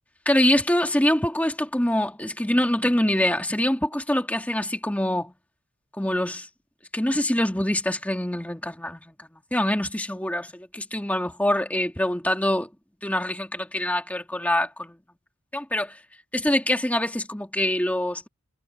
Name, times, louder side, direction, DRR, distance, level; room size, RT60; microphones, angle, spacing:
voice 1, 0.3-5.3 6.0-6.5 6.9-12.7 13.0-15.0 15.5-16.0 16.3-18.3, left 1 dB, 5° left, 2.0 m, -24 dB
head